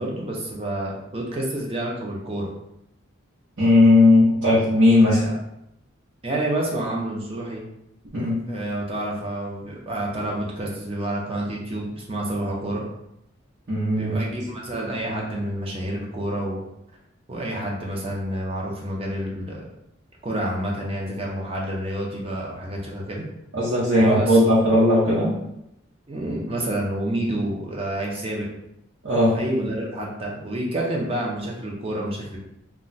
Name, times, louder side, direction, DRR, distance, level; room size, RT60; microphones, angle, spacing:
voice 1, 0.0-2.5 5.1-5.3 6.2-7.6 8.5-12.8 14.0-16.6 17.3-19.6 20.2-23.2 23.9-24.4 26.1-28.5 29.3-32.4, right 1 dB, 30° right, -2 dB, 0.6 m, -28 dB
voice 2, 3.6-5.3 8.1-8.4 13.7-14.2 23.5-25.3 29.0-29.4, left 1 dB, 70° right, -9 dB, 0.8 m, -17 dB
2.3 x 2.1 x 3.9 m, 0.82 s
head